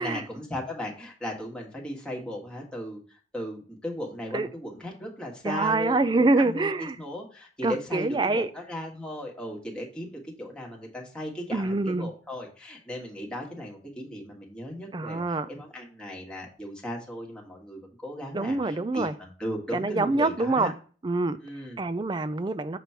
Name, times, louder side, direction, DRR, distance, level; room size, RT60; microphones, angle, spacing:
voice 1, 0.0-20.7 21.4-21.8, equal, 5° left, 1.5 m, -37 dB
voice 2, 5.4-7.0 7.6-8.5 11.5-12.1 14.9-15.5 18.3-19.1 19.7-20.7 21.0-21.4 21.8-22.8, right 2 dB, 25° right, 0.4 m, -25 dB
6.8 x 3.0 x 5.6 m
head